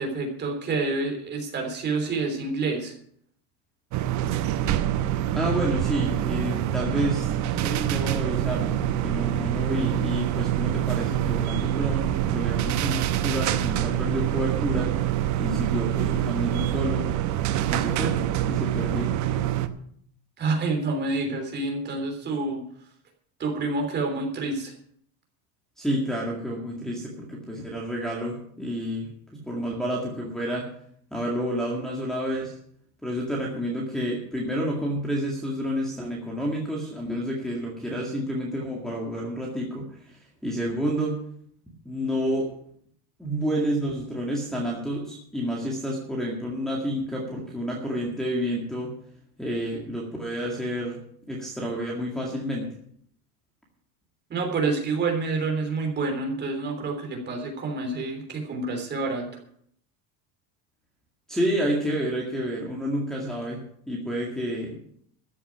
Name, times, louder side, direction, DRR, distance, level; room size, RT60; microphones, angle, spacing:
voice 1, 0.0-2.9 20.4-22.6 23.4-24.7 54.3-59.3, right 3 dB, 25° right, 3 dB, 3.3 m, -28 dB
sound 1, 3.9-19.7, right 12 dB, 40° right, 0.9 m, -26 dB
voice 2, 5.3-7.3 7.6-14.9 15.4-17.1 17.7-19.1 25.8-29.1 29.4-30.6 31.1-32.6 33.0-41.2 41.9-42.5 43.2-48.9 49.4-51.0 51.3-52.7 61.3-63.6 63.9-64.8, equal, ahead, -5 dB, 2.1 m, -29 dB
14.0 x 7.1 x 8.7 m, 0.65 s
cardioid pair, 165°, 42 cm